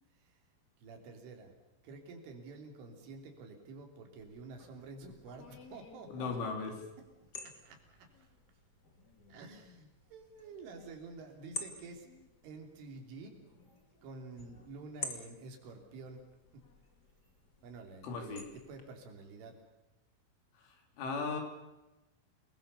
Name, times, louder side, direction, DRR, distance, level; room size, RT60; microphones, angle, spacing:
voice 1, 0.8-1.5 1.8-6.3 7.4-8.3 9.3-12.1 12.4-13.4 14.0-16.2 16.5-16.6 17.6-19.6, right 3 dB, 80° right, 3 dB, 5.8 m, -49 dB
sound 1, 4.2-18.8, left 3 dB, 35° left, 1.7 m, -51 dB
voice 2, 6.1-6.7 18.0-18.4 20.6-20.7 21.0-21.4, left 4 dB, 80° left, 4 dB, 5.9 m, -36 dB
29.0 x 20.0 x 6.9 m, 1.0 s
omnidirectional pair, 5.5 m